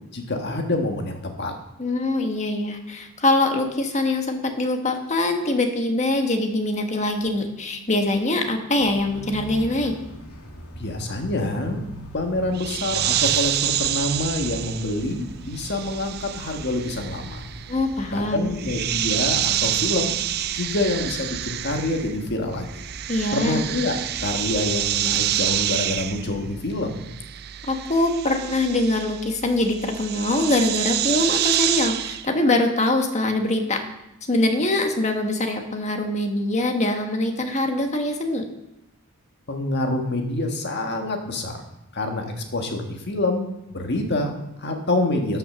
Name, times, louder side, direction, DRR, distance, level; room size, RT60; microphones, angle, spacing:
voice 1, 0.1-1.5 10.7-11.9 12.1-17.4 18.1-20.1 20.5-22.8 23.3-27.1 39.5-41.6 41.9-45.4, left 2 dB, 50° left, 3 dB, 1.7 m, -26 dB
voice 2, 1.8-9.9 17.7-18.5 23.1-23.7 27.7-33.8 34.3-38.4, left 2 dB, 30° left, 4 dB, 1.4 m, -23 dB
sound 1, 8.8-26.6, equal, 90° left, 2.6 m, -42 dB
sound 2, 12.5-22.3 22.5-32.3, right 12 dB, 45° right, 0.4 m, -27 dB
12.5 x 5.9 x 6.2 m, 0.88 s
head